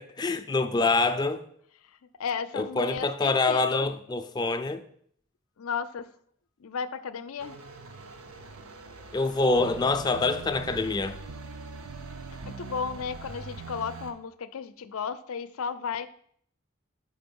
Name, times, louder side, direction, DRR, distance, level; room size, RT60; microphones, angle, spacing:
voice 1, 0.0-1.4 2.5-4.8 9.1-11.2, left 3 dB, 20° left, 0.3 m, -26 dB
voice 2, 1.8-3.9 5.6-6.1 6.6-7.6 12.5-16.1, left 6 dB, 85° left, 0.5 m, -34 dB
sound 1, 7.4-14.1, right 3 dB, 90° right, 0.8 m, -46 dB
sound 2, 9.6-14.1, right 4 dB, 55° right, 0.4 m, -42 dB
6.0 x 5.2 x 5.3 m
head